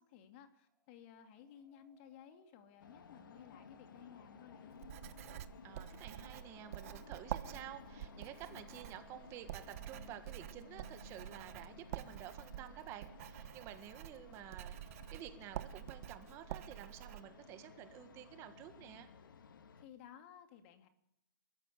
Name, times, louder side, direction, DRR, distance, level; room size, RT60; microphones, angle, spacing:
voice 1, 0.0-4.8 19.8-20.9, left 9 dB, 35° left, 8 dB, 2.3 m, -57 dB
sound 1, 0.7-18.9, right 2 dB, 5° right, 2.5 m, -72 dB
sound 2, 2.8-19.8, left 6 dB, 70° left, 2.1 m, -57 dB
Writing, 4.8-17.2, right 12 dB, 40° right, 1.2 m, -48 dB
voice 2, 5.6-19.1, right 12 dB, 25° right, 9 dB, 1.8 m, -51 dB
28.5 x 14.0 x 8.5 m, 0.83 s
hypercardioid pair, 150°, 11 cm